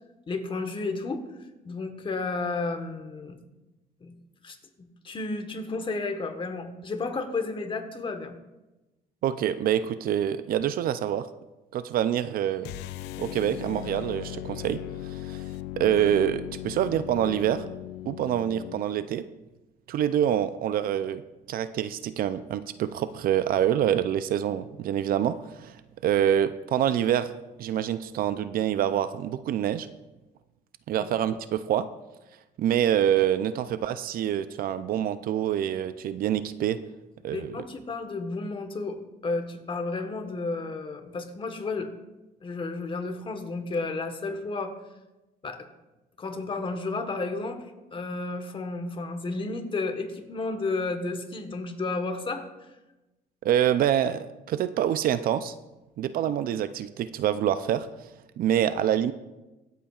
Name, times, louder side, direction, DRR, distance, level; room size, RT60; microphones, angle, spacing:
voice 1, 0.3-1.2 1.6-3.4 4.0-4.1 4.4-8.4 37.3-41.9 42.4-44.8 45.4-45.7 46.2-52.5, left 3 dB, 30° left, 7 dB, 1.3 m, -32 dB
voice 2, 9.2-11.3 11.7-12.7 13.2-15.5 15.8-17.7 18.1-19.2 19.9-21.2 21.5-25.8 26.0-27.3 27.6-29.9 30.9-31.9 32.6-36.8 37.2-37.7 53.4-55.5 56.0-57.9 58.4-59.1, right 10 dB, 60° right, 13 dB, 0.5 m, -26 dB
sound 1, 12.6-18.9, left 14 dB, 85° left, 0.4 m, -38 dB
24.0 x 8.3 x 2.4 m, 1.1 s
cardioid pair, 110°, 17 cm